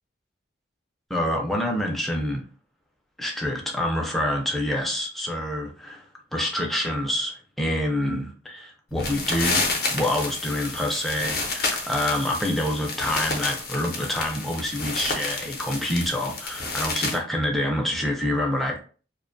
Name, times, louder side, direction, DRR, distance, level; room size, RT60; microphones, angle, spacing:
voice 1, 1.1-2.4 3.2-6.0 6.3-18.8, left 1 dB, ahead, 0.3 m, -27 dB
sound 1, 8.9-17.2, left 3 dB, 50° left, 0.6 m, -30 dB
2.4 x 2.1 x 2.5 m
head